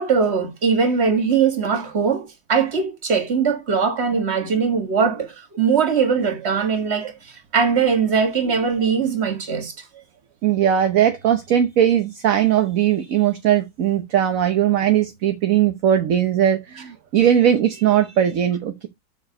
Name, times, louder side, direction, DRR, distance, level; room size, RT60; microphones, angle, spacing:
voice 1, 0.0-9.7, right 6 dB, 35° right, 1.6 m, -21 dB
voice 2, 10.4-18.9, right 10 dB, 55° right, 1.1 m, -19 dB
6.9 x 4.5 x 5.3 m
omnidirectional pair, 2.0 m